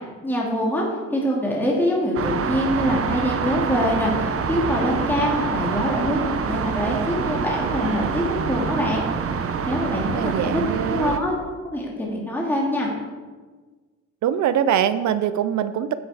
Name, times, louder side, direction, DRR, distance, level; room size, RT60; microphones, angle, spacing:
voice 1, 0.2-0.8 1.1-10.5 10.9-11.3 11.7-12.9, equal, 5° left, -3 dB, 2.4 m, -24 dB
sound 1, 2.1-11.2, right 6 dB, 50° right, 0.9 m, -26 dB
voice 2, 10.0-11.2 14.2-15.9, right 9 dB, 70° right, 13 dB, 0.6 m, -23 dB
9.7 x 7.8 x 4.9 m, 1.4 s
cardioid pair, 90°, 30 cm